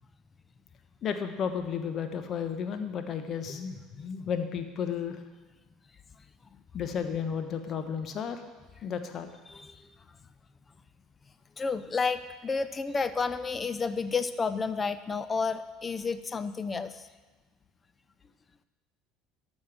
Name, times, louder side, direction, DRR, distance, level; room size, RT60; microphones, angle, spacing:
voice 1, 1.0-5.2 6.7-8.5 8.8-9.3, left 7 dB, 45° left, 8 dB, 1.2 m, -33 dB
voice 2, 11.6-17.1, left 4 dB, 25° left, 12 dB, 0.6 m, -31 dB
13.5 x 5.4 x 6.3 m, 1.3 s
hypercardioid pair, 65°, 0 cm